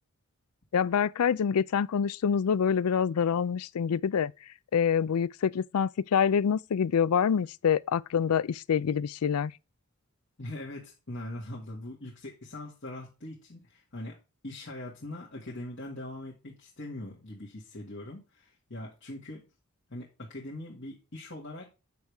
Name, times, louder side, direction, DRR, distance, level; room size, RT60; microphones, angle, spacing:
voice 1, 0.7-4.3 4.7-9.5, left 7 dB, 85° left, 0.4 m, -26 dB
voice 2, 10.4-14.2 14.4-19.5 19.9-21.7, left 1 dB, 55° left, 2.1 m, -41 dB
9.2 x 6.4 x 3.5 m
head